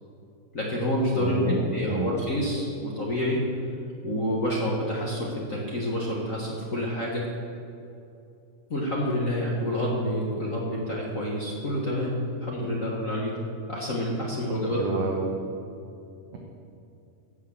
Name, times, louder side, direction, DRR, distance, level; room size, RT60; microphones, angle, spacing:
voice 1, 0.5-3.4 4.0-7.2 8.7-13.4 13.7-15.0, equal, 75° left, -4 dB, 0.7 m, -28 dB
voice 2, 1.2-2.1 14.6-15.2 16.3-16.4, right 4 dB, 65° right, 0 dB, 1.8 m, -30 dB
16.0 x 6.4 x 7.1 m, 2.6 s
omnidirectional pair, 3.9 m